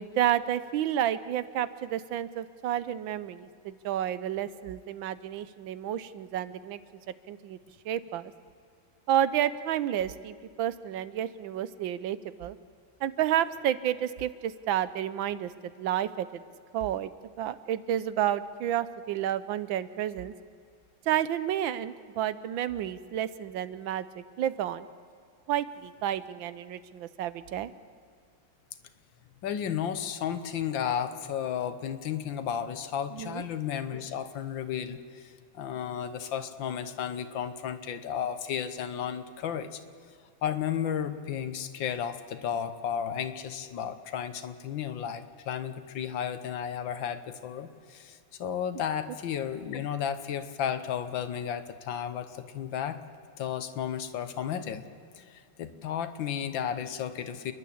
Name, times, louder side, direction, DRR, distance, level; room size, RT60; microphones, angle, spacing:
voice 1, 0.0-6.8 7.3-7.6 7.8-8.3 9.1-12.6 13.0-16.4 16.7-17.1 17.4-20.3 21.1-24.9 25.5-27.7 33.1-33.4, right 11 dB, 75° right, 15 dB, 1.4 m, -30 dB
voice 2, 29.4-39.8 40.4-53.0 53.4-54.8 55.2-57.5, left 8 dB, 70° left, 11 dB, 1.7 m, -33 dB
29.5 x 11.0 x 8.5 m, 2.3 s
omnidirectional pair, 2.2 m